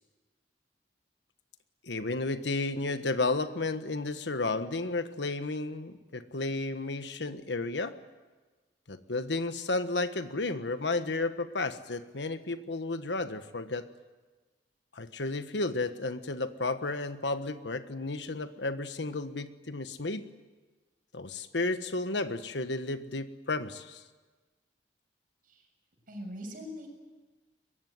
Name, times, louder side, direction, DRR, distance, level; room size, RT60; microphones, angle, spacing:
voice 1, 1.8-8.0 8.9-13.9 14.9-20.3 21.1-24.0, left 3 dB, 85° left, 10 dB, 1.4 m, -32 dB
voice 2, 26.1-26.9, equal, 55° right, 2 dB, 7.2 m, -41 dB
23.5 x 22.0 x 9.5 m, 1.3 s
head